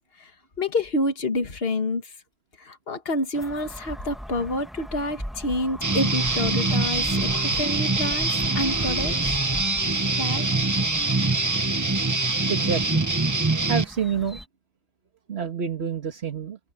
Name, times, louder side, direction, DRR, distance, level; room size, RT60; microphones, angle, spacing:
voice 1, 0.6-2.1 2.6-9.2 10.1-10.5, left 1 dB, 65° left, 2.0 m, -28 dB
sound 1, 3.3-14.5, equal, ahead, 2.2 m, -40 dB
Guitar, 5.8-13.8, right 3 dB, 20° right, 0.8 m, -24 dB
voice 2, 12.5-13.1 13.7-14.4 15.3-16.6, right 7 dB, 80° right, 1.9 m, -28 dB
omnidirectional pair, 1.1 m